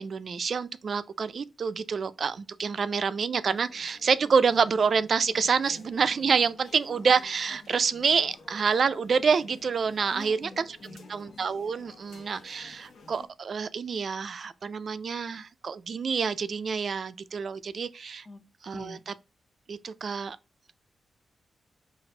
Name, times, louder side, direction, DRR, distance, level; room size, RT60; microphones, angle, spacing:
voice 1, 0.0-10.8 11.1-18.3 18.6-19.1 19.7-20.4, right 5 dB, 55° right, 0.3 m, -27 dB
sound 1, 3.5-13.3, left 3 dB, 80° left, 0.8 m, -52 dB
voice 2, 10.1-11.2 18.3-18.4 18.7-19.0, left 2 dB, 30° left, 0.5 m, -45 dB
4.1 x 2.5 x 3.2 m
cardioid pair, 95°, 0 cm